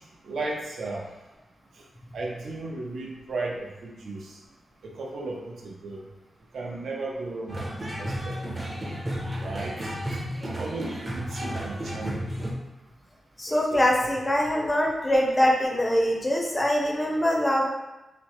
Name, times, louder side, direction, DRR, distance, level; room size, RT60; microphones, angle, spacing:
voice 1, 0.3-1.0 2.1-4.3 4.8-6.0 6.5-7.5 8.0-8.4 9.4-9.8 10.5-12.3 13.5-13.8, right 2 dB, 85° right, -2 dB, 0.5 m, -35 dB
sound 1, 7.5-12.5, equal, 30° right, 0.5 m, -32 dB
voice 2, 13.4-17.7, equal, 20° left, -1 dB, 0.5 m, -23 dB
2.8 x 2.0 x 3.0 m, 1.0 s
wide cardioid pair, 110°, 0 cm